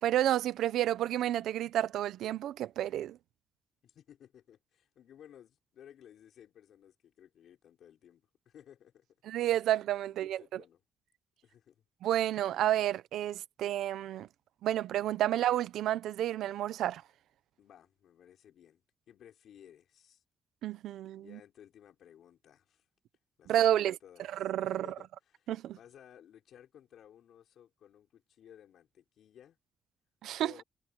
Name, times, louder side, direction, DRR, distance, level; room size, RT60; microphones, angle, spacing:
voice 1, 0.0-3.2 9.2-10.6 12.0-14.3 14.6-17.0 20.6-21.4 23.5-24.0 24.3-24.9 25.5-25.8 30.2-30.5, right 12 dB, 85° right, 0.9 m, -30 dB
voice 2, 3.8-9.1 10.0-10.8 11.4-11.8 17.6-20.2 21.2-22.8 23.4-24.3 24.6-29.6 30.4-30.6, left 10 dB, 60° left, 5.6 m, -57 dB
cardioid pair, 165°, 0 cm